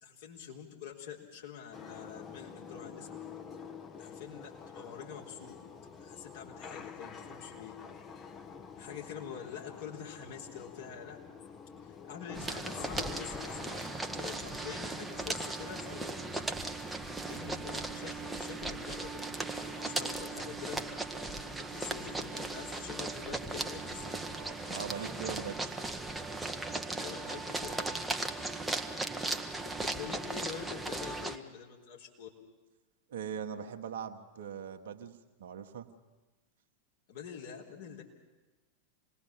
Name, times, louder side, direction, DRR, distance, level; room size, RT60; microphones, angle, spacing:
voice 1, 0.0-3.1 4.0-5.6 6.0-7.7 8.2-8.3 8.8-11.2 11.8-13.8 14.2-16.5 17.3-20.8 21.3-24.1 26.9-28.0 28.3-28.4 29.6-32.3 37.1-38.0, left 8 dB, 55° left, -1 dB, 3.9 m, -46 dB
sound 1, 1.7-14.4, left 6 dB, 25° left, 1.3 m, -47 dB
sound 2, 12.3-16.0 16.4-18.3 18.6-18.7 19.2-21.9 22.2-22.5 23.0-23.5 23.8-25.1, left 1 dB, 90° left, 3.7 m, -57 dB
sound 3, 12.3-31.4, right 2 dB, 5° right, 1.1 m, -37 dB
voice 2, 24.7-25.8 33.1-35.9, right 8 dB, 60° right, 7 dB, 1.4 m, -41 dB
26.5 x 20.0 x 7.4 m, 1.2 s
figure-of-eight pair, 90°, 0 cm